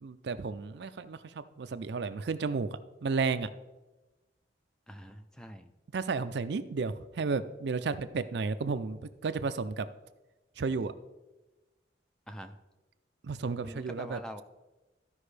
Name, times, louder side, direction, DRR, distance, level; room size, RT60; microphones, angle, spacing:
voice 1, 0.0-3.5 5.9-9.9 10.6-10.9 13.2-14.2, right 4 dB, 65° right, 12 dB, 0.4 m, -33 dB
voice 2, 4.9-5.7 12.3-12.6 13.6-14.4, equal, 5° left, 7 dB, 0.4 m, -44 dB
14.0 x 5.2 x 3.3 m, 1.1 s
head